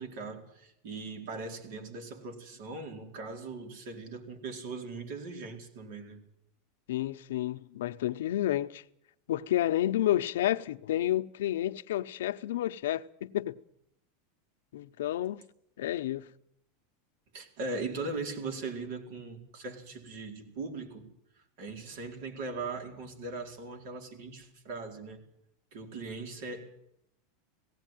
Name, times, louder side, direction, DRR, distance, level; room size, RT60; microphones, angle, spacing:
voice 1, 0.0-6.2 17.3-21.1 21.6-25.2 25.7-26.7, right 3 dB, 55° right, 4.5 m, -39 dB
voice 2, 6.9-8.8 9.3-13.6 14.7-15.4 15.8-16.3, left 13 dB, 90° left, 0.8 m, -30 dB
18.5 x 16.5 x 9.2 m
supercardioid pair, 170°, 0 cm